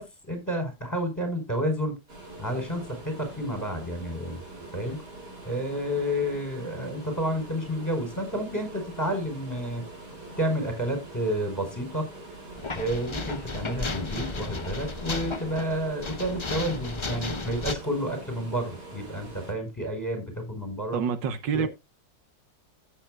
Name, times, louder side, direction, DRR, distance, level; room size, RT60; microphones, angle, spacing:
voice 1, 0.0-1.9 2.4-4.4 4.7-5.0 5.4-9.8 10.4-12.0 12.7-21.0 21.5-21.7, equal, 10° left, 5.0 m, -30 dB
sound 1, 2.1-19.5, right 2 dB, 65° right, 4.1 m, -44 dB
sound 2, 12.6-17.7, left 3 dB, 40° left, 0.4 m, -34 dB
voice 2, 20.9-21.7, right 6 dB, 85° right, 1.7 m, -27 dB
15.0 x 8.1 x 2.4 m
omnidirectional pair, 1.9 m